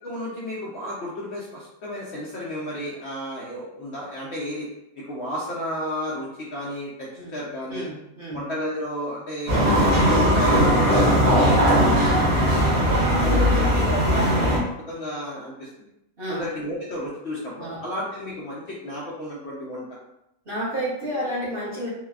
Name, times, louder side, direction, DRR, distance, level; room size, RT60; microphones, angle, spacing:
voice 1, 0.0-4.7 5.0-7.9 8.3-9.5 9.8-11.8 12.2-14.6 14.9-15.7 16.3-20.0 21.0-21.2, equal, 60° left, -6 dB, 0.8 m, -33 dB
voice 2, 7.7-8.4 12.0-12.3 16.2-16.5 17.6-17.8 20.5-21.9, equal, 40° right, -9 dB, 1.1 m, -30 dB
sound 1, 9.5-14.6, equal, 85° right, 1.8 m, -19 dB
3.9 x 2.1 x 2.3 m, 0.86 s
omnidirectional pair, 1.5 m